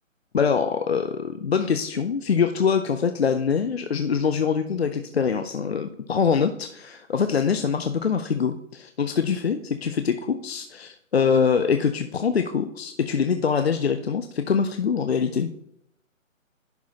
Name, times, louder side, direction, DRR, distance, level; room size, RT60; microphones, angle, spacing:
voice 1, 0.3-15.5, left 6 dB, 55° left, 9 dB, 0.5 m, -24 dB
10.5 x 4.6 x 2.8 m, 0.73 s
hypercardioid pair, 165°, 40 cm